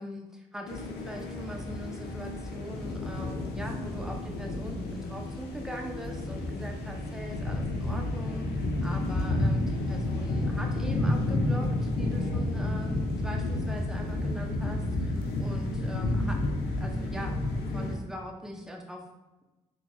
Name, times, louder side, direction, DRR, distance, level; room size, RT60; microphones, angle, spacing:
voice 1, 0.0-16.4 16.8-19.0, equal, 5° right, 2 dB, 0.7 m, -41 dB
sound 1, 0.7-18.0, left 2 dB, 70° left, 0.6 m, -31 dB
3.8 x 3.4 x 2.4 m, 1.1 s
hypercardioid pair, 50°, 17 cm